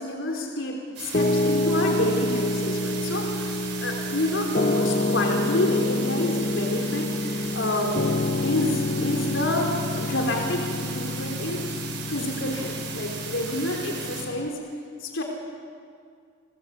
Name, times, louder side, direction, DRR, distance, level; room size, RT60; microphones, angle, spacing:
voice 1, 0.0-3.5 3.8-11.6 12.1-14.6 15.0-15.2, left 1 dB, 80° left, 1 dB, 3.6 m, -28 dB
sound 1, 1.0-14.2, right 6 dB, 65° right, 6.5 m, -37 dB
Piano, 1.1-14.5, left 2 dB, 40° left, 0.7 m, -28 dB
30.0 x 20.5 x 8.2 m, 2.2 s
head